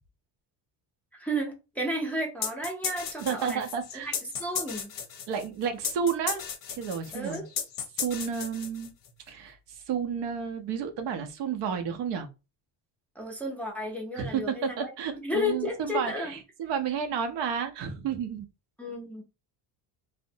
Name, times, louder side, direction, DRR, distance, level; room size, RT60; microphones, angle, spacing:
voice 1, 1.1-3.6 4.0-4.9 7.1-7.5 13.2-14.9 15.2-16.3 18.8-19.2, left 1 dB, 5° left, 0.5 m, -33 dB
sound 1, 2.4-9.1, left 7 dB, 50° left, 0.6 m, -35 dB
voice 2, 3.2-4.1 5.3-6.4 6.7-7.4 8.0-8.9 9.3-12.3 14.2-18.5, right 7 dB, 70° right, 0.7 m, -31 dB
2.5 x 2.1 x 2.7 m
cardioid pair, 125°, 45 cm